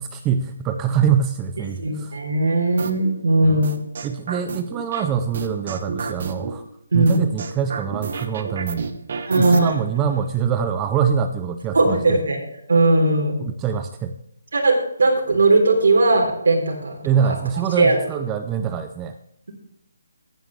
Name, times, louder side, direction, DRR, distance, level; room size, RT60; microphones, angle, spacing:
voice 1, 0.0-2.1 3.4-3.7 4.0-6.6 6.9-8.9 9.4-12.2 13.4-14.1 17.0-19.2, right 7 dB, 10° right, 7 dB, 0.4 m, -24 dB
voice 2, 1.8-3.7 6.9-7.2 9.3-9.7 11.7-12.4 12.7-13.4 14.5-17.4 17.8-18.0, right 2 dB, 65° right, 0 dB, 3.4 m, -18 dB
sound 1, 2.8-3.1 3.6-5.0 5.3-6.5 7.1-9.6, right 5 dB, 35° right, 1.1 m, -30 dB
16.0 x 9.1 x 3.1 m, 0.76 s
hypercardioid pair, 175°, 0 cm